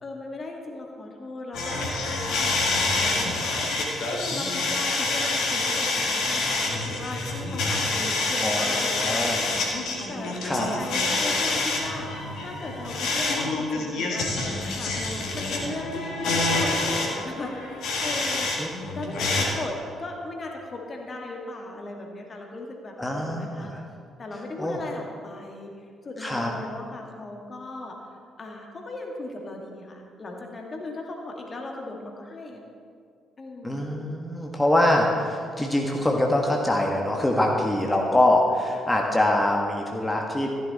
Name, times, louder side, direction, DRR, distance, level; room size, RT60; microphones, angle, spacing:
voice 1, 0.0-14.9 15.3-18.7 18.9-19.7 20.0-23.7 24.2-25.7 26.0-27.9 28.4-32.6 33.4-34.0, left 2 dB, 40° left, 1 dB, 2.0 m, -37 dB
sound 1, 1.5-18.6 18.9-19.5, left 2 dB, 60° left, 1.9 m, -27 dB
voice 2, 8.4-9.4 10.4-10.7 18.6-19.2 23.0-23.8 24.6-24.8 26.2-26.5 33.6-40.5, left 1 dB, 10° left, 0 dB, 1.6 m, -24 dB
14.5 x 10.5 x 4.2 m, 2.2 s
figure-of-eight pair, 40°, 0 cm